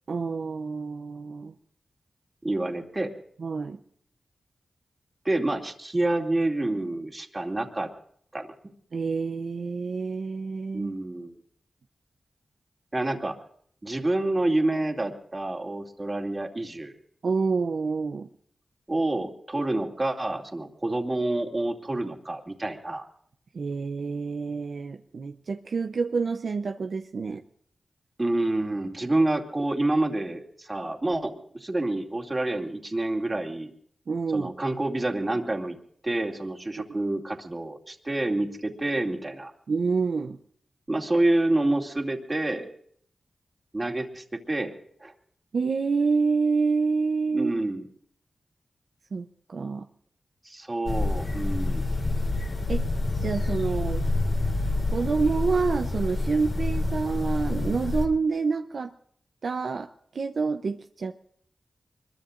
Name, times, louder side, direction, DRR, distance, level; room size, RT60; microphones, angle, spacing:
voice 1, 0.1-1.5 3.4-3.8 8.9-10.9 17.2-18.3 23.5-27.4 34.1-34.5 36.8-36.9 39.7-40.4 45.5-47.5 49.1-49.9 52.7-52.9 53.2-54.0 54.9-58.9 59.4-59.9 60.1-61.2, right 4 dB, 70° right, 5 dB, 0.7 m, -27 dB
voice 2, 2.4-3.1 5.2-7.9 8.3-8.5 10.7-11.3 12.9-13.4 13.8-16.9 18.9-23.1 28.2-33.7 34.3-35.8 36.0-39.5 40.9-42.7 43.7-44.7 45.0-45.1 47.3-47.9 50.4-51.8, right 2 dB, 30° right, 2 dB, 2.6 m, -28 dB
sound 1, 50.9-58.1, left 2 dB, 60° left, 3.5 m, -27 dB
24.0 x 22.0 x 2.6 m, 0.63 s
cardioid pair, 50°, 0 cm